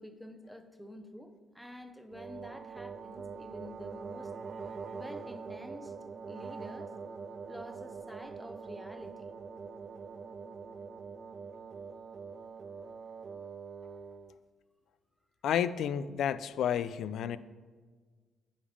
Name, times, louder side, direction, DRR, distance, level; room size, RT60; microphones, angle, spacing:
voice 1, 0.0-4.3 4.9-5.9 6.2-6.9 7.5-9.3, equal, ahead, 8 dB, 0.8 m, -48 dB
sound 1, 2.1-14.3, right 5 dB, 45° right, 0.4 m, -44 dB
voice 2, 15.4-17.4, left 9 dB, 75° left, 16 dB, 0.3 m, -31 dB
9.9 x 5.2 x 5.1 m, 1.5 s
cardioid pair, 90°, 0 cm